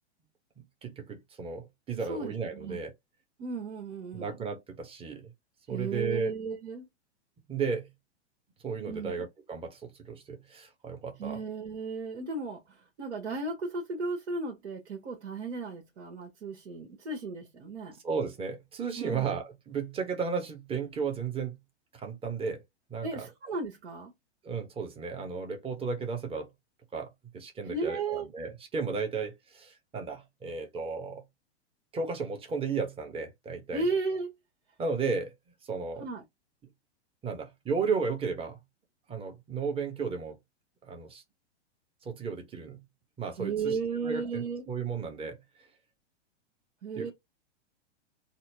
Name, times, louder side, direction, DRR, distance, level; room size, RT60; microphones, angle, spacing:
voice 1, 0.6-2.9 4.1-5.3 5.7-6.3 7.5-7.9 8.6-11.4 18.0-21.6 21.9-22.6 22.9-23.3 24.4-26.5 26.9-31.2 31.9-33.8 34.8-35.3 35.7-36.1 37.2-38.6 39.1-40.4 40.8-41.2 42.0-42.8 43.2-43.8 44.0-45.4 47.0-47.1, right 5 dB, 15° right, 1.0 m, -34 dB
voice 2, 3.4-4.4 5.7-6.9 8.9-9.2 11.2-18.0 19.0-19.3 23.0-24.1 27.7-28.3 33.7-34.3 36.0-36.2 43.4-44.6 46.8-47.1, right 4 dB, 65° right, 1.3 m, -35 dB
4.2 x 2.0 x 2.6 m
hypercardioid pair, 115°, 34 cm